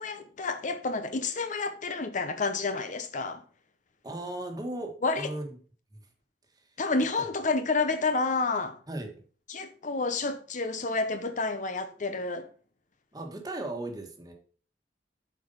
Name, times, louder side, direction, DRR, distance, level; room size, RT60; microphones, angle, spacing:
voice 1, 0.0-3.4 5.0-5.3 6.8-8.8 9.5-12.5, left 3 dB, 45° left, 0.7 m, -29 dB
voice 2, 4.0-5.6 5.9-6.1 6.5-6.6 7.2-7.3 8.9-9.2 13.1-14.3, right 1 dB, 20° right, 1.5 m, -37 dB
8.1 x 4.9 x 5.4 m
head